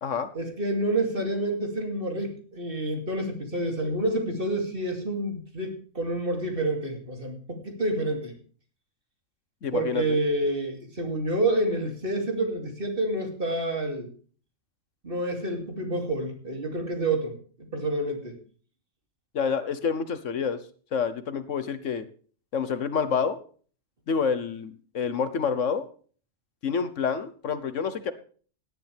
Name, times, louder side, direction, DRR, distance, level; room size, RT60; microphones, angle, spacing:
voice 1, 0.3-8.3 9.7-14.1 15.0-17.3 17.7-18.4, right 1 dB, 45° right, 3 dB, 3.0 m, -28 dB
voice 2, 9.6-10.2 19.3-20.6 20.9-22.1 22.5-23.4 24.1-25.8 26.6-28.1, left 6 dB, 70° left, 12 dB, 1.3 m, -28 dB
16.5 x 11.0 x 3.5 m, 0.42 s
omnidirectional pair, 1.4 m